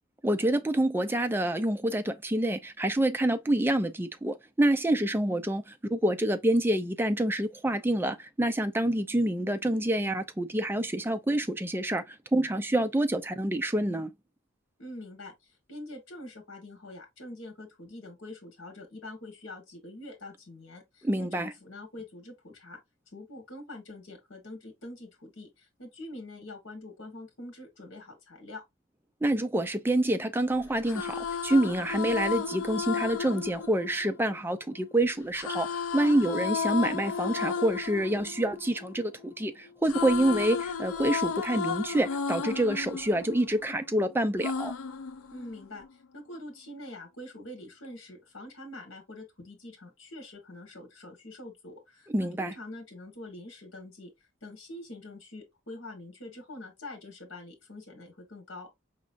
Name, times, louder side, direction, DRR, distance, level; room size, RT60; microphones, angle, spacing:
voice 1, 0.2-14.1 21.0-21.5 29.2-44.7 52.1-52.5, right 1 dB, 10° right, 0.4 m, -27 dB
voice 2, 14.8-22.8 23.1-28.6 45.3-54.1 54.4-58.7, left 1 dB, 70° left, 1.5 m, -45 dB
sound 1, 30.7-34.8 35.4-39.4 39.7-43.9 44.4-45.9, left 6 dB, 90° left, 0.4 m, -34 dB
5.0 x 3.1 x 2.5 m
head